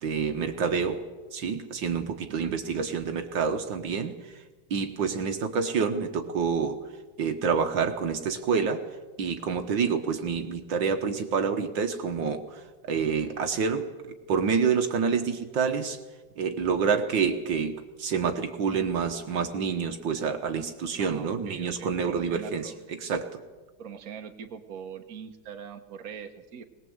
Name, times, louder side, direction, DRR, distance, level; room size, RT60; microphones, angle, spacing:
voice 1, 0.0-1.1 1.3-4.4 4.7-6.8 7.2-8.9 9.2-13.9 14.3-16.0 16.4-23.4, right 6 dB, 65° right, 6 dB, 1.8 m, -28 dB
voice 2, 21.0-22.8 23.8-26.6, right 7 dB, 45° right, 5 dB, 1.6 m, -41 dB
21.0 x 19.5 x 7.9 m, 1.2 s
omnidirectional pair, 2.3 m